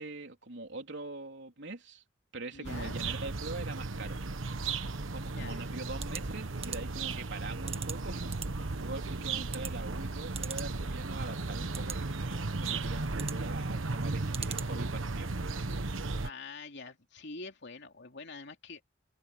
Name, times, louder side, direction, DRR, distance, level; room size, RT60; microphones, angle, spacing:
voice 1, 0.0-2.0 2.3-4.2 5.0-15.8, right 2 dB, 65° right, 3.7 m, -43 dB
voice 2, 2.5-3.0 5.4-5.7 16.2-18.8, left 3 dB, 65° left, 2.9 m, -45 dB
sound 1, 2.6-16.3, right 3 dB, 90° right, 1.2 m, -35 dB
sound 2, 5.9-15.0, right 6 dB, 30° right, 1.7 m, -45 dB
head